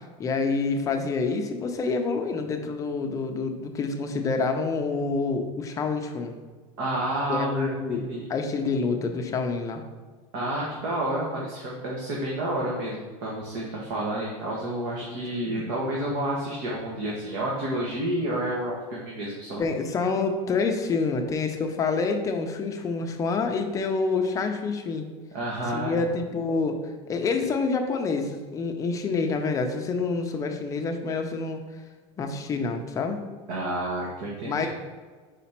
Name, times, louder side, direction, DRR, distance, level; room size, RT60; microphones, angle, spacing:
voice 1, 0.0-6.4 7.3-8.0 8.3-9.8 15.1-15.2 15.4-15.6 19.6-25.1 25.7-26.8 27.1-31.6 32.2-33.2 34.5-34.7, left 4 dB, 20° left, 4 dB, 0.6 m, -27 dB
voice 2, 6.8-8.3 10.3-19.6 25.3-26.0 33.5-34.7, right 1 dB, 60° right, -4 dB, 1.4 m, -30 dB
5.0 x 4.2 x 5.7 m, 1.4 s
supercardioid pair, 160°, 17 cm